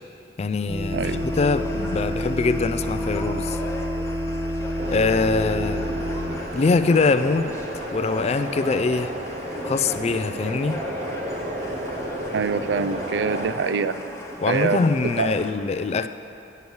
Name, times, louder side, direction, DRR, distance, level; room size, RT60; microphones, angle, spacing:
voice 1, 0.4-1.0 1.4-3.6 4.9-5.9 6.5-7.6 7.9-9.1 9.7-10.9 14.4-16.1, left 4 dB, 35° left, 11 dB, 0.3 m, -23 dB
sound 1, 0.7-6.3, equal, 20° right, 1.6 m, -28 dB
sound 2, 0.9-15.5, left 1 dB, 15° left, 1.0 m, -38 dB
voice 2, 0.9-1.3 12.3-14.0 14.4-14.8 15.2-15.4, right 5 dB, 70° right, 12 dB, 0.4 m, -24 dB
sound 3, 4.8-13.5, right 1 dB, 40° right, 0.8 m, -32 dB
9.3 x 7.9 x 7.0 m, 2.9 s
head